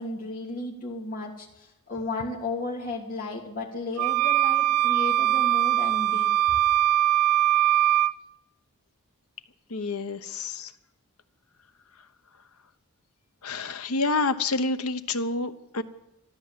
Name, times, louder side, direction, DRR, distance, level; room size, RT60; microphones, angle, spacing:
voice 1, 0.0-6.3, left 2 dB, 40° left, -3 dB, 3.0 m, -34 dB
sound 1, 4.0-8.1, right 12 dB, 90° right, 0.5 m, -22 dB
voice 2, 9.7-10.7 13.4-15.8, left 3 dB, 85° left, 10 dB, 1.0 m, -28 dB
13.0 x 13.0 x 7.6 m, 0.89 s
head